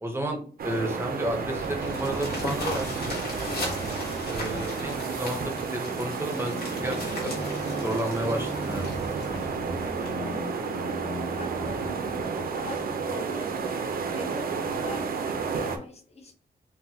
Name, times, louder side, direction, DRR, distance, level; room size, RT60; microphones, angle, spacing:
voice 1, 0.0-2.9 4.3-7.4 7.8-9.4, right 1 dB, 15° right, 2 dB, 0.5 m, -32 dB
sound 1, 0.6-15.8, right 5 dB, 70° right, 0.4 m, -31 dB
sound 2, 0.7-11.2 11.8-11.9 12.3-12.4 12.7-12.8 13.2-13.5 14.4-14.5, left 2 dB, 80° left, 1.3 m, -39 dB
voice 2, 3.4-3.9 10.1-10.5 10.9-12.0 12.5-16.3, left 2 dB, 40° left, 4 dB, 0.6 m, -43 dB
sound 3, 6.2-13.8, left 1 dB, 60° left, 1.2 m, -40 dB
3.9 x 2.1 x 2.7 m, 0.44 s
wide cardioid pair, 145°, 16 cm